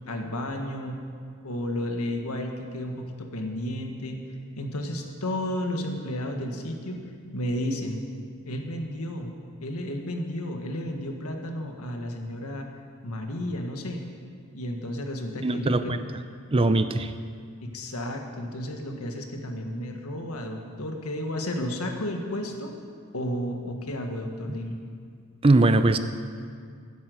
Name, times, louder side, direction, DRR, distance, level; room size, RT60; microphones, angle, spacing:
voice 1, 0.1-1.0 1.4-4.2 4.6-7.0 7.3-8.0 8.4-9.3 9.6-12.7 13.0-14.0 14.5-16.1 17.6-22.7 23.1-24.8, left 1 dB, 90° left, 3 dB, 1.7 m, -32 dB
voice 2, 15.4-16.0 16.5-17.1 25.4-26.0, right 2 dB, 25° right, 10 dB, 0.5 m, -21 dB
11.5 x 10.0 x 8.0 m, 2.1 s
head